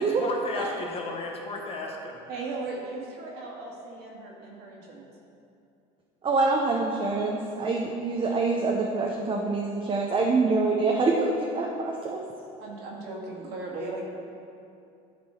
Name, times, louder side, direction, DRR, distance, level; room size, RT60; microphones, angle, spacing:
voice 1, 0.0-2.2, left 2 dB, 35° left, 0 dB, 1.3 m, -34 dB
voice 2, 2.3-5.0 12.6-14.0, right 3 dB, 65° right, -3 dB, 2.0 m, -37 dB
voice 3, 6.2-12.2, right 3 dB, 30° right, -1 dB, 0.8 m, -25 dB
11.5 x 4.4 x 4.4 m, 2.7 s
supercardioid pair, 105°, 17 cm